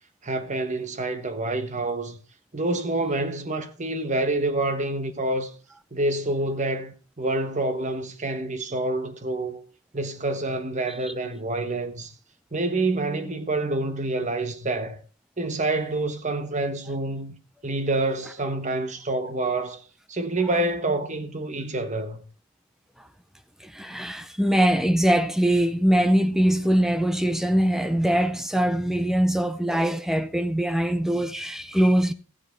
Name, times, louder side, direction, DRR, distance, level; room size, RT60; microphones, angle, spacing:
voice 1, 0.2-2.2 2.5-5.5 5.9-9.6 9.9-12.1 12.5-15.0 15.4-17.4 17.6-19.8 20.1-22.2, right 2 dB, 35° right, 1.3 m, -27 dB
voice 2, 23.6-32.1, equal, ahead, 0.5 m, -22 dB
15.5 x 7.9 x 4.6 m
head